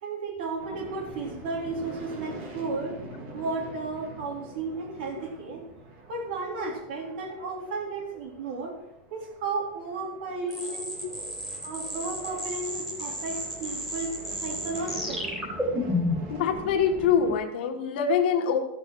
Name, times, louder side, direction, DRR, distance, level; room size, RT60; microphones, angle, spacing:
voice 1, 0.0-3.0 3.3-5.6 6.1-8.8 9.1-11.0 11.6-14.1 14.4-15.4, right 3 dB, 65° right, 2 dB, 3.3 m, -34 dB
sound 1, 0.6-17.3, right 2 dB, 40° right, 2.6 m, -45 dB
sound 2, 10.5-16.3, left 1 dB, 5° right, 3.0 m, -32 dB
voice 2, 16.3-18.6, left 7 dB, 75° left, 4 dB, 1.8 m, -24 dB
13.5 x 6.1 x 6.4 m, 0.86 s
supercardioid pair, 170°, 5 cm